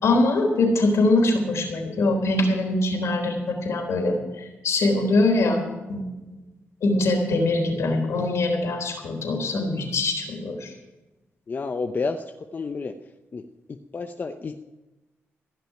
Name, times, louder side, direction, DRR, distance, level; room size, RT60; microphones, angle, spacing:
voice 1, 0.0-6.4 6.8-10.7, left 2 dB, 75° left, 2 dB, 3.8 m, -23 dB
voice 2, 11.5-12.2 12.5-12.9 13.3-13.4 13.9-14.6, left 4 dB, 40° left, 6 dB, 0.8 m, -29 dB
16.5 x 6.3 x 10.0 m, 1.1 s
cardioid pair, 85°, 5 cm